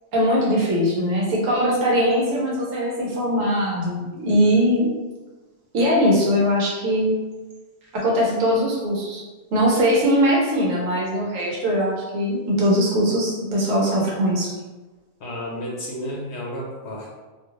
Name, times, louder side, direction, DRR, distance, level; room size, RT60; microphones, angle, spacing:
voice 1, 0.1-4.9 5.7-7.2 7.9-9.2 9.5-14.5, equal, 75° right, -4 dB, 1.2 m, -21 dB
voice 2, 15.2-17.1, equal, 60° left, -3 dB, 0.9 m, -32 dB
2.8 x 2.4 x 3.1 m, 1.2 s
omnidirectional pair, 1.4 m